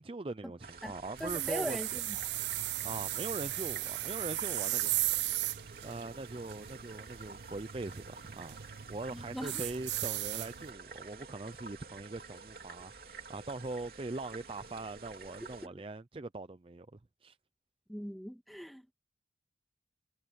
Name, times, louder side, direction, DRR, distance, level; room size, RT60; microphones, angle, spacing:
voice 1, 0.0-1.8 2.8-5.0 5.8-17.4, right 2 dB, 30° right, 0.5 m, -42 dB
sound 1, 0.6-15.7, right 4 dB, 55° right, 3.3 m, -50 dB
voice 2, 1.2-2.1 9.1-9.7 15.6-15.8 17.9-18.9, equal, ahead, 2.1 m, -40 dB
sound 2, 1.2-10.7, right 16 dB, 80° right, 0.5 m, -36 dB
head